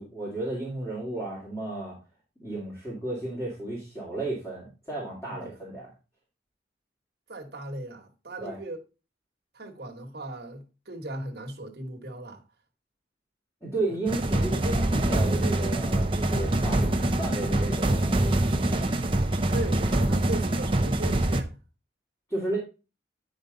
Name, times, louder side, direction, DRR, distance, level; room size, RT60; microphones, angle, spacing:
voice 1, 0.0-2.0 2.4-5.9 8.4-8.6 13.6-18.9 22.3-22.6, right 2 dB, 15° left, 2.4 m, -33 dB
voice 2, 7.3-8.8 9.5-12.4 19.5-21.6, right 1 dB, 55° right, 1.4 m, -37 dB
sound 1, 14.1-21.4, right 1 dB, 30° right, 0.7 m, -25 dB
9.4 x 5.1 x 3.9 m
head